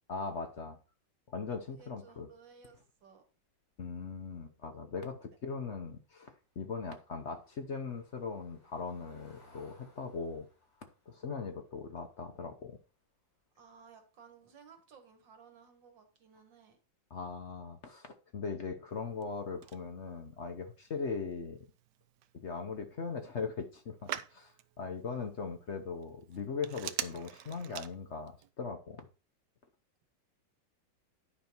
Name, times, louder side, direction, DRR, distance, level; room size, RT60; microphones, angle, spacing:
voice 1, 0.1-0.8 1.3-2.3 3.8-10.4 11.1-12.8 17.1-21.6 22.3-29.0, left 5 dB, 50° left, 6 dB, 1.0 m, -40 dB
voice 2, 1.7-3.2 13.6-16.8, right 6 dB, 90° right, 5 dB, 2.4 m, -58 dB
Car passing by / Engine, 6.1-13.0 13.4-13.6 13.9-14.0, left 2 dB, 70° left, 4.5 m, -65 dB
Telephone, 18.9-28.5, right 11 dB, 70° right, 1.2 m, -47 dB
10.5 x 5.4 x 4.5 m, 0.35 s
omnidirectional pair, 2.0 m